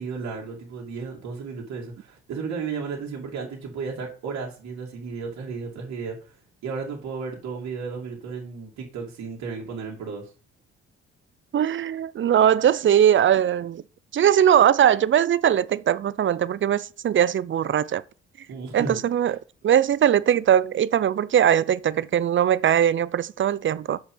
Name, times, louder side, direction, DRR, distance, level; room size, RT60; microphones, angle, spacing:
voice 1, 0.0-6.2 6.6-10.3 18.5-19.0, right 5 dB, 70° right, 2.7 m, -33 dB
voice 2, 11.5-13.8 14.1-18.0 18.7-19.4 19.6-24.0, right 10 dB, 40° right, 0.6 m, -20 dB
7.5 x 5.9 x 5.6 m
supercardioid pair, 60°, 29 cm